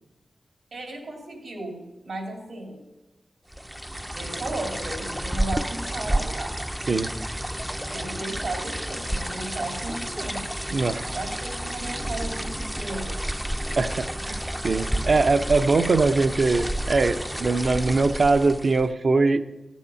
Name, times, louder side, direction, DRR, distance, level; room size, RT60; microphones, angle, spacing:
voice 1, 0.7-2.8 4.1-6.6 7.9-10.5 11.1-13.3, right 2 dB, 85° right, 1 dB, 2.9 m, -35 dB
sound 1, 3.5-18.9, right 1 dB, 5° right, 0.4 m, -30 dB
voice 2, 10.7-11.1 13.7-19.5, right 3 dB, 60° right, 9 dB, 0.6 m, -22 dB
14.5 x 7.2 x 5.5 m, 1.1 s
wide cardioid pair, 75°, 0 cm